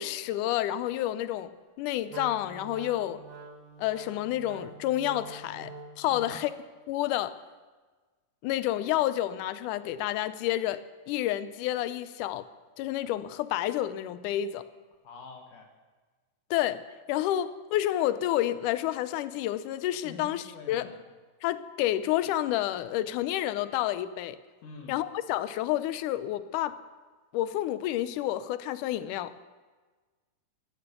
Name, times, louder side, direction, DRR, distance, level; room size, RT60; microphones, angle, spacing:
voice 1, 0.0-1.5 1.8-3.2 3.8-6.5 6.9-7.3 8.4-10.8 11.1-12.4 12.8-14.6 16.5-16.8 17.1-20.9 21.4-24.4 24.9-26.8 27.3-29.3, left 13 dB, 80° left, 14 dB, 1.9 m, -29 dB
Wind instrument woodwind instrument, 2.1-6.1, right 3 dB, 65° right, 1.2 m, -45 dB
voice 2, 15.0-15.7 20.0-21.0 24.6-24.9, left 4 dB, 60° left, 3 dB, 2.8 m, -45 dB
15.5 x 13.5 x 6.8 m, 1.4 s
omnidirectional pair, 4.2 m